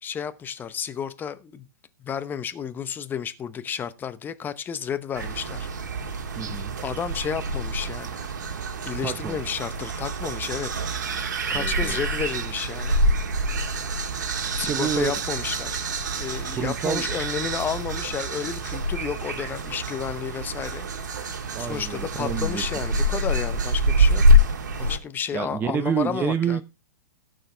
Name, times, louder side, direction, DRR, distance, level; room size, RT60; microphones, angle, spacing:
voice 1, 0.0-1.7 2.0-5.7 6.8-8.2 8.8-10.7 11.5-13.0 14.5-15.8 16.2-24.2 24.8-26.6, left 8 dB, 20° left, 0.9 m, -32 dB
sound 1, 5.1-25.0, equal, 65° right, 1.9 m, -26 dB
voice 2, 6.4-6.7 9.0-9.5 11.5-12.0 14.5-15.1 16.6-17.1 21.5-22.6 25.3-26.6, right 7 dB, 20° right, 0.7 m, -28 dB
17.0 x 6.5 x 3.4 m
figure-of-eight pair, 110°, 10 cm